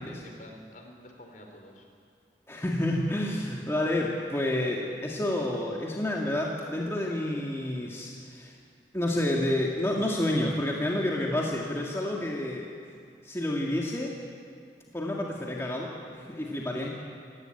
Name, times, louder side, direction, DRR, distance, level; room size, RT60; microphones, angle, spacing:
voice 1, 0.1-1.9 16.8-16.9, left 1 dB, 50° left, 3 dB, 4.2 m, -49 dB
voice 2, 2.5-8.6 8.9-12.7 13.2-14.1 14.9-16.9, left 1 dB, 15° left, -2 dB, 2.1 m, -29 dB
27.5 x 16.0 x 9.1 m, 2.3 s
head